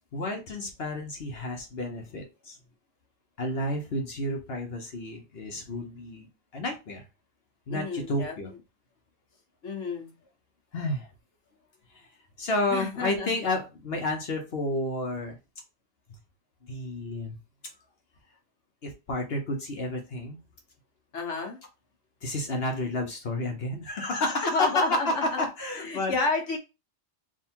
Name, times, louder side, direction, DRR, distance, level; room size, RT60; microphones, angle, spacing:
voice 1, 0.1-2.6 3.4-6.3 6.5-7.1 7.7-8.5 10.7-11.1 11.9-12.1 12.4-15.4 16.7-17.4 18.8-20.4 22.2-26.1, left 2 dB, 60° left, 3 dB, 1.1 m, -31 dB
voice 2, 7.7-8.3 9.6-10.1 12.7-13.4 21.1-21.6 24.5-25.4 25.8-26.6, left 3 dB, 85° left, 2 dB, 1.4 m, -30 dB
3.7 x 2.7 x 4.3 m, 0.27 s
omnidirectional pair, 1.2 m